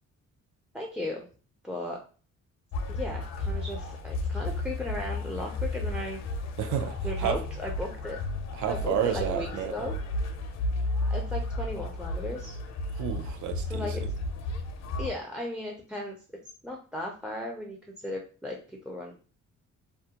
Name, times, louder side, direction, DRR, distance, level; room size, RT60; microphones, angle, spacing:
voice 1, 0.7-1.3 1.6-2.0 2.9-6.2 7.0-8.2 8.7-9.9 11.0-12.6 13.7-14.0 15.0-16.2 16.6-18.6 18.8-19.1, left 1 dB, 5° right, 0 dB, 0.4 m, -36 dB
sound 1, 2.7-15.1, left 2 dB, 60° left, 0.5 m, -33 dB
voice 2, 6.6-7.4 8.5-10.0 12.9-13.9, right 9 dB, 75° right, 7 dB, 0.5 m, -31 dB
2.3 x 2.1 x 2.7 m, 0.39 s
cardioid pair, 90°, 30 cm